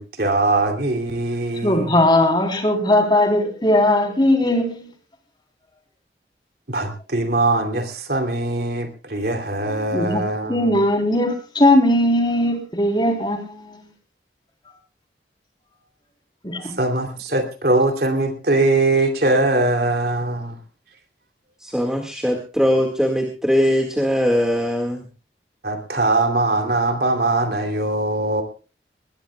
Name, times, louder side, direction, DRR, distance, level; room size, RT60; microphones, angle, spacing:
voice 1, 0.0-2.0 6.7-10.8 16.8-20.6 25.6-28.4, right 2 dB, 60° right, 5 dB, 3.0 m, -21 dB
voice 2, 1.6-4.9 9.7-10.2 10.5-13.8 16.4-16.6, left 1 dB, 25° left, 3 dB, 3.7 m, -19 dB
voice 3, 21.6-25.0, equal, 5° right, 1 dB, 1.9 m, -20 dB
20.5 x 20.0 x 2.3 m, 0.34 s
head